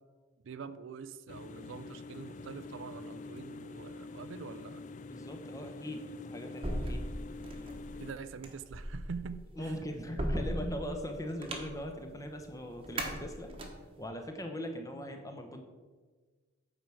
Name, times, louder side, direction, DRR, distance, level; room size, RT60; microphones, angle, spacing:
voice 1, 0.4-4.8 8.0-9.7, right 5 dB, 70° right, 13 dB, 0.4 m, -44 dB
sound 1, 1.3-8.1, left 3 dB, 35° left, 0.3 m, -46 dB
voice 2, 5.1-7.0 9.6-13.5 14.0-15.6, equal, 15° left, 5 dB, 0.8 m, -40 dB
sound 2, 6.6-14.0, right 1 dB, 25° right, 1.1 m, -38 dB
8.8 x 4.6 x 6.3 m, 1.4 s
head